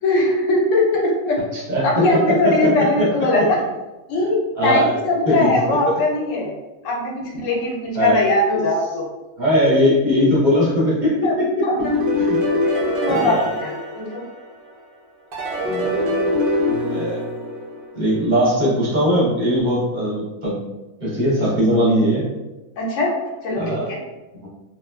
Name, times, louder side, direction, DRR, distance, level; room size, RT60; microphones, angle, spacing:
voice 1, 0.0-1.4 1.8-3.6 4.1-6.5 6.8-9.0 11.2-11.3 11.6-11.9 12.6-14.2 22.8-23.1 23.4-24.0, left 2 dB, 65° left, -1 dB, 0.9 m, -20 dB
voice 2, 1.5-2.0 2.4-3.1 4.6-4.9 5.3-5.5 8.0-8.2 9.4-11.6 12.2-12.4 13.1-13.5 15.7-16.3 16.9-17.2 17.9-20.6 21.0-22.3 23.6-23.8 24.4-24.5, equal, 40° right, -7 dB, 0.7 m, -19 dB
sound 1, 11.8-14.7 15.3-18.2, left 1 dB, 70° right, 0.5 m, -23 dB
2.9 x 2.2 x 2.2 m, 1.1 s
omnidirectional pair, 1.6 m